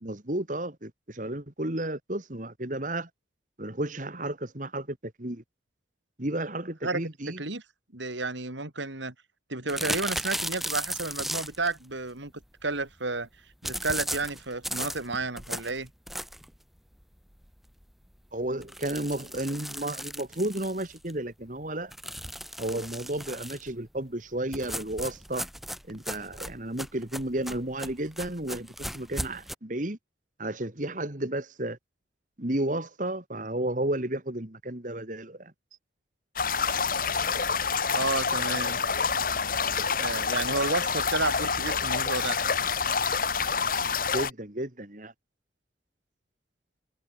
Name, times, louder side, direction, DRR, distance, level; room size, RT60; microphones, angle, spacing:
voice 1, 0.0-3.1 3.6-5.4 6.2-7.4 18.3-22.1 22.6-25.5 25.9-30.0 30.4-31.8 32.4-35.5 44.1-45.1, right 1 dB, 40° right, 2.2 m, -32 dB
voice 2, 6.8-7.6 7.9-9.1 9.5-12.3 12.6-13.3 13.6-15.9 37.9-38.8 40.0-42.4, right 3 dB, 75° right, 3.7 m, -31 dB
sound 1, 9.7-11.7 13.6-16.5 17.0-17.1 17.4-17.5 17.8-17.9 18.6-21.1 21.9-23.7 24.5-29.5, equal, ahead, 0.8 m, -36 dB
sound 2, 36.4-44.3, left 5 dB, 45° left, 1.7 m, -27 dB
head